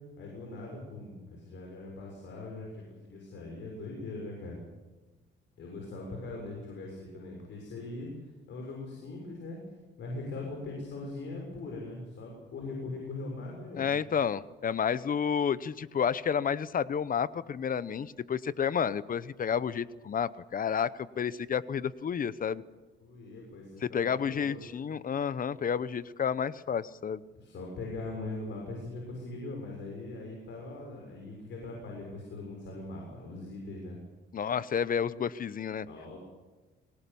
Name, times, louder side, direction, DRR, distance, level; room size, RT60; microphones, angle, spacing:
voice 1, 0.2-4.6 5.6-8.1 8.5-9.6 10.0-14.0 23.0-24.7 25.5-25.6 27.3-34.0 35.9-36.2, left 2 dB, 70° left, 0 dB, 6.8 m, -41 dB
voice 2, 13.8-22.6 23.8-27.2 34.3-35.9, left 7 dB, 45° left, 17 dB, 0.9 m, -30 dB
24.5 x 19.5 x 7.1 m, 1.2 s
cardioid pair, 90°, 20 cm